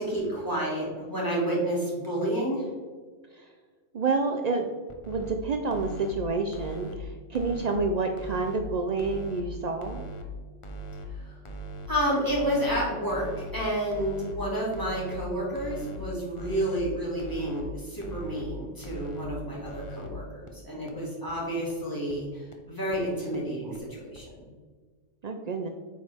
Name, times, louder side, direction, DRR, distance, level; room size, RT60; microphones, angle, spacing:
voice 1, 0.0-2.7 11.2-11.3 11.9-13.3 13.5-24.4, equal, 15° left, -6 dB, 2.3 m, -30 dB
voice 2, 3.9-4.7 5.1-10.1 25.2-25.7, right 3 dB, 75° right, 4 dB, 0.3 m, -29 dB
sound 1, 4.9-5.3 5.7-6.1 6.5-6.9 7.3-7.8 8.2-8.6 9.0-9.4 9.8-10.2 10.6-11.1 11.5-11.9 12.3-12.7 13.1-13.5 13.9-14.3 14.7-15.2 15.6-16.0 16.4-16.8 17.2-17.6 18.0-18.4 18.8-19.3 19.6-20.1 20.5-20.6 20.9-21.0 21.3-21.4 21.7-21.8 22.1-22.2 22.5-22.6 22.9-23.0 23.3-23.4 23.7-23.8 24.1-24.2, right 3 dB, 35° left, 0.6 m, -40 dB
8.1 x 5.1 x 3.4 m, 1.5 s
omnidirectional pair, 1.3 m